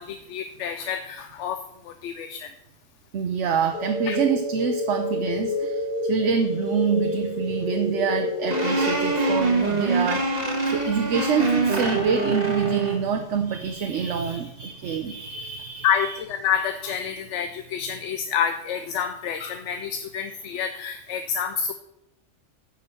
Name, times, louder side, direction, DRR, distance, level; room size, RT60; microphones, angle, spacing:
voice 1, 0.0-1.6 2.0-2.5 4.1-4.2 15.8-21.7, left 8 dB, 80° left, 9 dB, 0.9 m, -28 dB
voice 2, 3.1-16.2, right 6 dB, 75° right, 5 dB, 1.1 m, -26 dB
sound 1, 3.7-9.4, left 2 dB, 50° left, 1.7 m, -29 dB
sound 2, 8.5-13.0, right 3 dB, 35° right, 1.6 m, -24 dB
9.9 x 5.3 x 6.7 m, 0.86 s
omnidirectional pair, 1.2 m